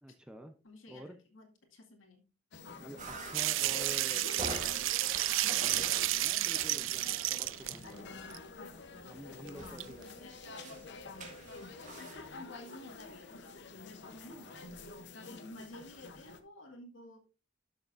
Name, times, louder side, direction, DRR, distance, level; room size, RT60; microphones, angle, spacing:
voice 1, 0.0-0.5 0.9-1.2 2.8-4.8 5.6-8.1 9.1-10.3 14.2-14.7, right 1 dB, 5° right, 8 dB, 0.6 m, -49 dB
voice 2, 0.6-2.2 9.6-10.6 12.0-17.2, left 1 dB, 80° left, 3 dB, 2.1 m, -53 dB
sound 1, 2.5-16.4, left 3 dB, 60° left, 0.8 m, -48 dB
sound 2, 3.0-12.2, right 2 dB, 40° right, 1.7 m, -47 dB
sound 3, 3.3-7.8 8.3-8.4 9.5-9.6 9.8-9.9, right 16 dB, 70° right, 0.4 m, -31 dB
12.0 x 6.5 x 2.5 m, 0.33 s
head